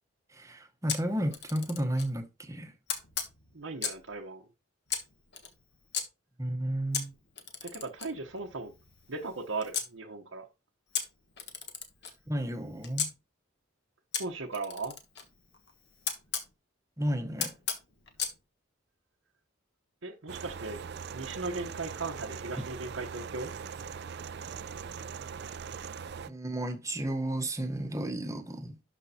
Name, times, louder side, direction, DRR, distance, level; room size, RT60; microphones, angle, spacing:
voice 1, 0.3-2.7 6.4-7.1 12.3-13.1 17.0-17.5 26.3-28.8, right 1 dB, 15° right, 1.0 m, -32 dB
Camera, 0.9-2.1 2.9-4.1 4.9-6.0 6.9-9.9 10.9-13.1 14.1-16.5 17.4-18.4, left 7 dB, 55° left, 1.4 m, -37 dB
voice 2, 3.5-4.5 7.6-8.7 9.1-10.5 14.2-15.0 20.0-20.8 21.1-23.5, right 3 dB, 80° right, 1.0 m, -37 dB
sound 1, 20.3-26.3, right 6 dB, 55° right, 0.4 m, -41 dB
12.0 x 5.3 x 2.8 m
head